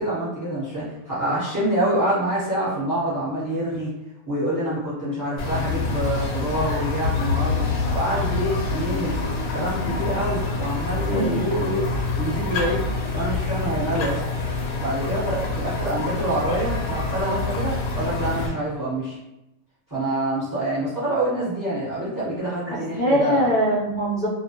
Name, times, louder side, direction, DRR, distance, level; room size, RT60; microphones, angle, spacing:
voice 1, 0.0-3.9 4.3-11.9 12.2-12.8 13.1-14.2 14.8-19.2 19.9-23.4, right 1 dB, 15° right, -10 dB, 1.0 m, -26 dB
sound 1, 5.4-18.5, left 3 dB, 90° left, 1.1 m, -26 dB
voice 2, 22.7-24.3, equal, 50° left, -9 dB, 0.5 m, -22 dB
2.3 x 2.2 x 2.8 m, 0.92 s
omnidirectional pair, 1.6 m